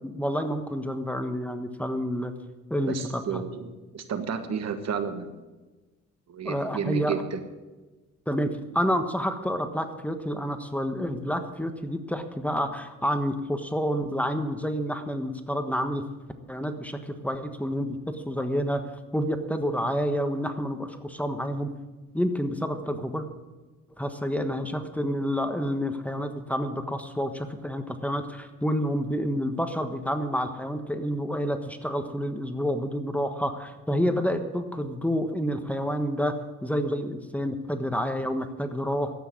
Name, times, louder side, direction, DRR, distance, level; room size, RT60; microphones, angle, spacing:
voice 1, 0.0-2.3 2.7-3.4 6.4-7.2 8.3-16.0 16.5-18.8 19.1-21.7 22.1-23.3 24.0-36.3 36.6-39.2, equal, 5° left, 7 dB, 1.3 m, -29 dB
voice 2, 2.9-5.3 6.3-7.4, right 6 dB, 60° right, 9 dB, 1.5 m, -32 dB
12.5 x 8.6 x 9.5 m, 1.2 s
cardioid pair, 90°, 30 cm